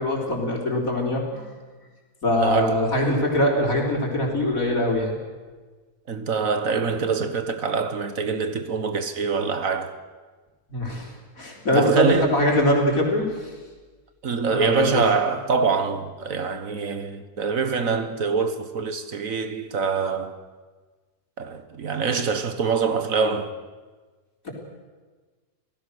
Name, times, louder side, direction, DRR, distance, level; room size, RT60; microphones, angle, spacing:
voice 1, 0.0-1.4 2.2-5.2 10.7-11.1 11.4-13.5 14.5-15.0 24.4-24.5, left 1 dB, 65° left, 4.6 m, -23 dB
voice 2, 2.4-2.9 6.1-9.9 11.7-12.3 14.2-20.4 21.4-23.5, right 5 dB, 65° right, 1.7 m, -24 dB
27.5 x 18.0 x 6.4 m
omnidirectional pair, 1.6 m